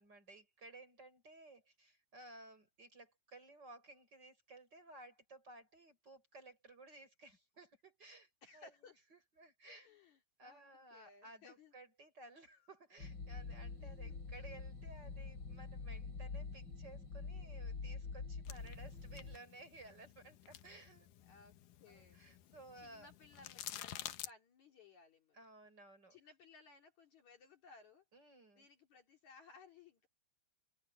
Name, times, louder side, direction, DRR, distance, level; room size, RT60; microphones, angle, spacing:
voice 1, 0.0-8.7 9.1-9.9 10.4-21.1 21.9-23.1 25.3-26.2 28.1-28.7, right 2 dB, 25° right, 6.0 m, -57 dB
voice 2, 8.4-9.0 9.7-11.7 13.8-14.2 21.3-22.2 22.8-25.4 26.1-28.0 28.5-30.1, left 4 dB, 50° left, 3.6 m, -61 dB
sound 1, 13.0-19.4, left 4 dB, 30° left, 3.0 m, -46 dB
sound 2, 18.5-24.3, left 12 dB, 70° left, 2.3 m, -51 dB
open air
omnidirectional pair, 4.4 m